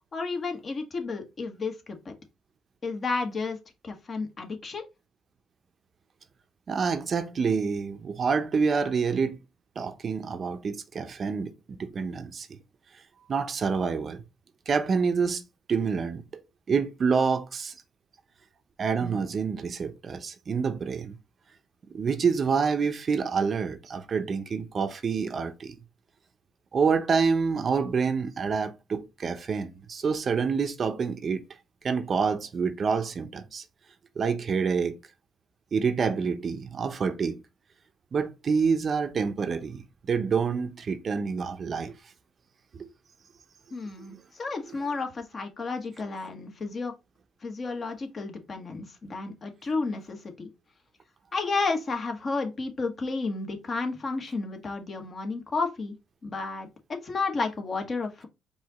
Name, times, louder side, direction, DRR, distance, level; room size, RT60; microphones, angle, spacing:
voice 1, 0.1-2.1 2.8-3.6 3.8-4.8 43.7-46.9 47.4-50.5 51.3-56.0 56.2-58.3, left 3 dB, 40° left, 1.3 m, -32 dB
voice 2, 6.7-9.4 9.8-12.5 13.3-14.2 14.7-15.4 15.7-16.4 16.7-17.7 18.8-21.2 21.9-25.8 26.7-31.4 31.8-33.6 34.2-35.0 35.7-37.4 38.1-41.9 42.7-42.9, right 5 dB, 45° right, 0.7 m, -27 dB
4.8 x 2.8 x 4.0 m
cardioid pair, 90°, 0 cm